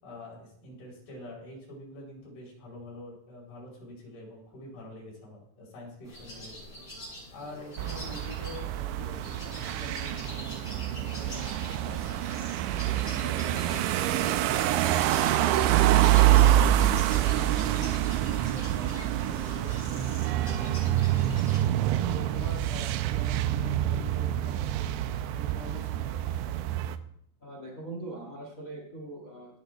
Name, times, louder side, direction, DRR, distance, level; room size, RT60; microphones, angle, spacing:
voice 1, 0.0-6.7 7.3-12.3 12.8-16.7 17.1-21.4 22.0-26.8, left 1 dB, 55° left, -2 dB, 6.4 m, -45 dB
sound 1, 6.0-21.6, left 1 dB, 25° left, 6.7 m, -45 dB
sound 2, 7.8-27.0, right 13 dB, 85° right, 2.7 m, -26 dB
voice 2, 27.4-29.6, right 2 dB, 80° left, -1 dB, 0.7 m, -41 dB
17.5 x 9.0 x 3.3 m, 0.70 s
omnidirectional pair, 5.3 m